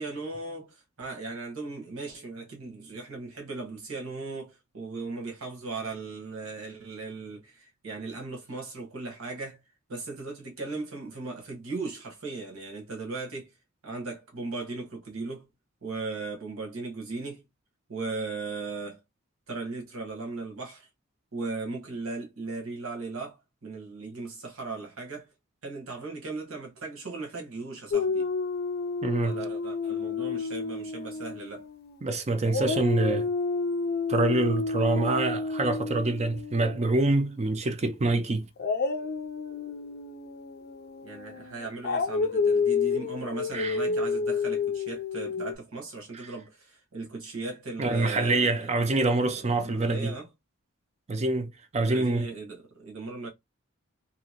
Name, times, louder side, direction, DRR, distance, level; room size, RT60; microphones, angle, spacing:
voice 1, 0.0-9.6 9.9-13.5 13.8-15.5 15.8-17.4 17.9-19.0 19.5-20.9 21.3-25.3 25.6-28.3 29.2-31.6 41.0-48.7 49.3-50.3 51.9-53.3, right 3 dB, 85° right, 1.3 m, -37 dB
Dog, 27.9-32.1 32.5-37.5 38.6-45.5, left 4 dB, 50° left, 0.4 m, -30 dB
voice 2, 29.0-29.3 32.0-33.3 34.1-38.5 43.5-43.8 46.1-46.3 47.8-50.1 51.1-52.3, right 2 dB, 30° right, 0.4 m, -26 dB
2.8 x 2.7 x 2.8 m
head